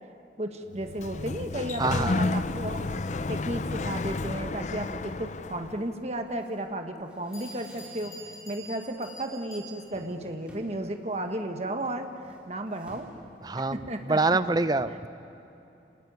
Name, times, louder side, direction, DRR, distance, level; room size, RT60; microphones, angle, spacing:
voice 1, 0.4-2.9 3.3-8.1 8.5-13.1 13.7-14.4 14.9-15.0, right 1 dB, 40° right, 5 dB, 1.6 m, -34 dB
Sliding door, 0.7-5.9, left 3 dB, 40° left, 0.5 m, -31 dB
voice 2, 1.8-2.2 13.4-15.1, right 3 dB, 25° right, 13 dB, 0.6 m, -26 dB
sound 1, 2.7-5.0 5.6-8.3 8.6-9.1 9.4-14.1, equal, 5° right, 4.4 m, -53 dB
Bell, 7.0-7.1 7.3-10.1, equal, 20° left, 4.9 m, -46 dB
26.5 x 20.0 x 9.5 m, 2.9 s
head